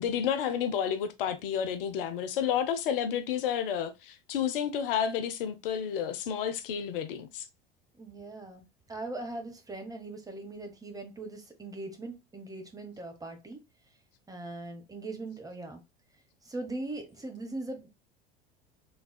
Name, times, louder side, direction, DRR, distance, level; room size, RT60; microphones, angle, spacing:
voice 1, 0.0-7.5, left 8 dB, 65° left, 0.7 m, -31 dB
voice 2, 8.0-13.6 14.3-15.8 16.4-17.9, right 2 dB, 10° right, 1.0 m, -40 dB
3.5 x 3.3 x 2.2 m
figure-of-eight pair, 75°, 30 cm